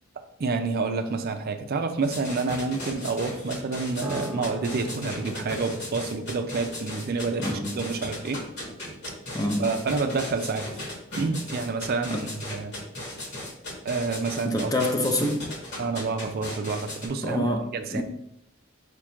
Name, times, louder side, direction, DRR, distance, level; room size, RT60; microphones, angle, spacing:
voice 1, 0.4-8.4 9.6-10.7 11.2-12.7 13.8-14.7 15.8-18.0, right 4 dB, 50° right, 0.4 m, -28 dB
sound 1, 2.0-17.1, left 1 dB, 55° left, 1.6 m, -36 dB
Piano, 4.0-13.4 13.7-13.9, equal, 5° right, 1.0 m, -43 dB
voice 2, 7.4-7.8 9.3-9.7 12.1-12.3 14.4-15.8 17.2-18.0, left 1 dB, 20° left, 0.6 m, -27 dB
5.1 x 2.4 x 4.3 m
head